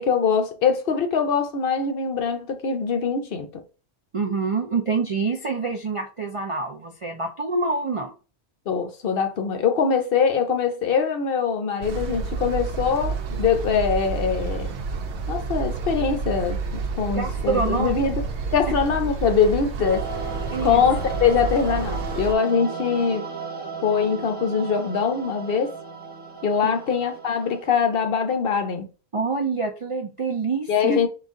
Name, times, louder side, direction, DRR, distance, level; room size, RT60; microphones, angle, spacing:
voice 1, 0.0-3.5 8.7-14.7 15.3-16.6 17.0-18.2 18.5-20.0 20.6-23.3 23.8-25.7 26.4-28.9 30.7-31.1, left 6 dB, 60° left, 0.8 m, -23 dB
voice 2, 4.1-8.1 17.1-18.0 20.5-20.8 29.1-31.0, right 4 dB, 50° right, 0.4 m, -26 dB
sound 1, 11.8-22.3, right 4 dB, 85° right, 0.9 m, -29 dB
sound 2, 19.8-27.7, right 4 dB, 10° right, 0.9 m, -35 dB
3.9 x 2.4 x 3.5 m
omnidirectional pair, 1.1 m